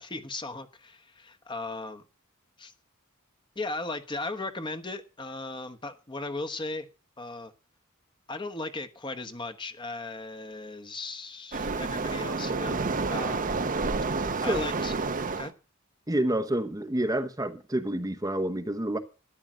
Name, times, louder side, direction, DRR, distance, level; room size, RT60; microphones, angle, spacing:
voice 1, 0.0-2.0 2.6-2.7 3.5-6.9 7.2-7.5 8.3-12.8 13.1-13.5 14.4-14.9 15.4-15.5, left 2 dB, 20° left, 1.2 m, -37 dB
Waves surf, 11.5-15.5, right 3 dB, 40° right, 0.9 m, -29 dB
voice 2, 14.3-14.6 16.1-19.0, right 1 dB, 15° right, 1.0 m, -28 dB
13.5 x 10.5 x 6.2 m
head